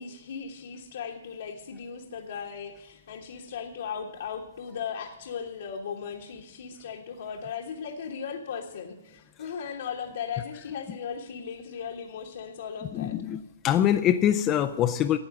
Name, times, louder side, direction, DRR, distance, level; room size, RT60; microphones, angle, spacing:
voice 1, 0.0-13.1, left 6 dB, 65° left, 0 dB, 1.4 m, -37 dB
voice 2, 12.9-15.2, left 10 dB, 25° left, 8 dB, 0.5 m, -24 dB
13.0 x 8.6 x 6.1 m, 1.1 s
hypercardioid pair, 140°, 0 cm